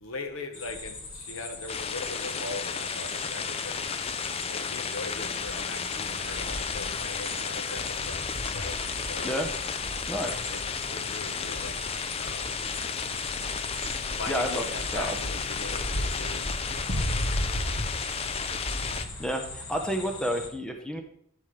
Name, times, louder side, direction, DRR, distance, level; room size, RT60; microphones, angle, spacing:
voice 1, 0.0-3.8 4.4-8.8 9.0-9.3 10.2-10.6 10.9-11.8 12.2-12.6 14.2-16.5 16.8-17.2, left 3 dB, 75° left, 6 dB, 1.2 m, -40 dB
sound 1, 0.5-20.5, left 1 dB, 60° left, 1.6 m, -36 dB
sound 2, 1.7-19.0, left 6 dB, 30° left, 0.4 m, -33 dB
voice 2, 10.1-10.4 14.3-14.6 14.9-15.2 19.2-21.0, equal, 5° left, 3 dB, 0.9 m, -30 dB
12.0 x 7.3 x 3.3 m, 0.70 s
head